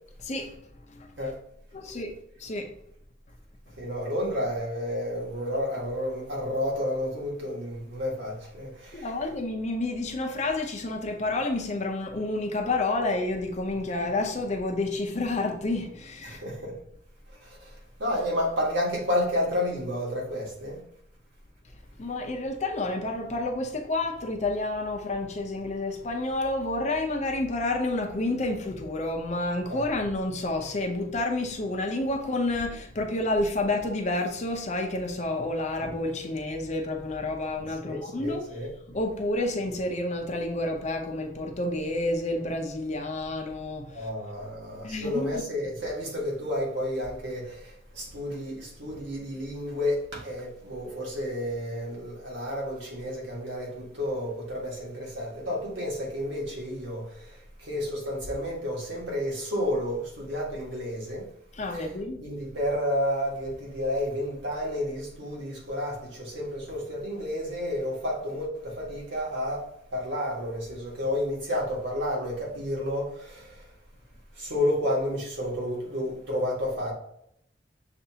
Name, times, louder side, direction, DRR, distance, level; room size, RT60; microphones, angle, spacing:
voice 1, 0.2-0.6 0.9-1.3 1.7-2.7 8.9-16.4 22.0-38.5 38.9-44.1 44.8-45.4 61.5-62.3, left 2 dB, 40° left, 0.7 m, -29 dB
voice 2, 3.8-9.1 16.2-16.7 17.4-20.8 29.7-29.8 37.8-38.7 43.9-61.3 61.7-61.8 62.2-73.6 74.3-76.9, left 1 dB, 85° right, 1.6 m, -31 dB
6.7 x 2.6 x 2.8 m
head